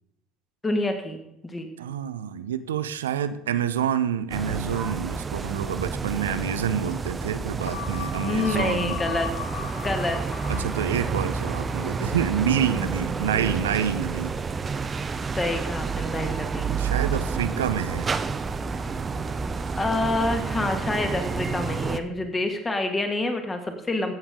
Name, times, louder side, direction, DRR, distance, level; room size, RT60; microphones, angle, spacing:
voice 1, 0.6-1.7 8.2-9.3 9.7-10.2 13.3-13.4 15.4-16.7 19.8-24.1, left 2 dB, 20° left, 5 dB, 1.9 m, -27 dB
voice 2, 1.8-9.0 9.7-9.8 10.5-14.3 16.6-18.1, right 9 dB, 80° right, 13 dB, 0.5 m, -28 dB
sound 1, 4.3-22.0, right 5 dB, 30° right, 0.7 m, -29 dB
sound 2, 7.7-12.3 12.7-12.8, left 10 dB, 70° left, 0.6 m, -38 dB
15.0 x 7.1 x 3.7 m, 0.83 s
hypercardioid pair, 65°, 0 cm